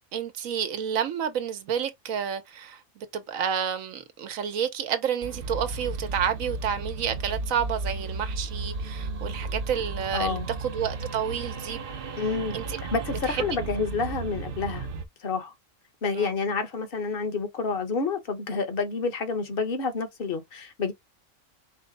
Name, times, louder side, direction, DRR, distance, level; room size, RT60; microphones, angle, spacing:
voice 1, 0.1-11.8 12.5-12.8 13.3-13.5 16.1-16.3, right 8 dB, 85° right, 1.3 m, -30 dB
sound 1, 5.2-15.0, right 3 dB, 55° right, 0.7 m, -34 dB
voice 2, 10.1-10.5 12.2-12.5 12.9-14.9 15.2-15.5 16.0-20.9, left 4 dB, 45° left, 1.1 m, -29 dB
4.9 x 2.1 x 3.9 m
omnidirectional pair, 1.4 m